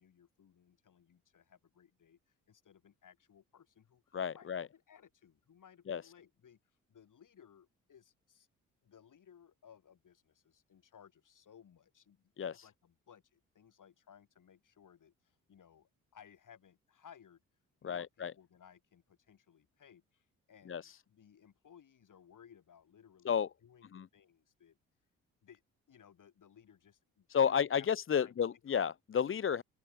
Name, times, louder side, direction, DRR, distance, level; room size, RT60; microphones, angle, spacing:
voice 1, 0.0-6.6 6.9-8.5 8.8-17.4 17.8-24.8 25.4-25.6 25.9-27.9 28.1-28.4, left 8 dB, 50° left, 6.2 m, -61 dB
voice 2, 4.1-4.7 5.9-6.0 12.4-12.7 17.8-18.3 20.7-21.0 23.2-23.5 23.9-24.1 27.3-29.6, left 7 dB, 30° left, 0.8 m, -32 dB
open air
hypercardioid pair, 45°, 39 cm